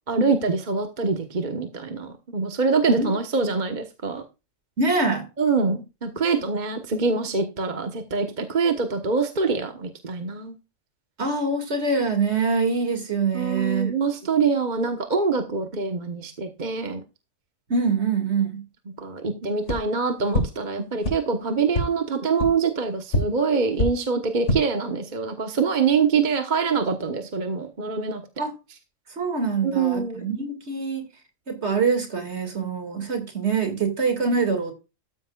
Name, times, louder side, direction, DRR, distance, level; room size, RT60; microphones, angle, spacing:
voice 1, 0.1-4.2 5.4-10.6 13.3-17.0 19.0-28.2 29.6-30.3, right 4 dB, 35° right, 1.3 m, -24 dB
voice 2, 4.8-5.3 11.2-13.9 17.7-18.6 28.4-28.5 29.2-31.1 31.5-34.7, right 4 dB, 55° right, 2.5 m, -24 dB
sound 1, 19.6-19.8 20.3-20.4 21.0-21.1 21.7-21.8 22.4-22.5 23.1-23.2 23.7-23.9 24.3-24.6, left 1 dB, 65° left, 2.3 m, -22 dB
13.5 x 9.6 x 2.4 m
omnidirectional pair, 1.4 m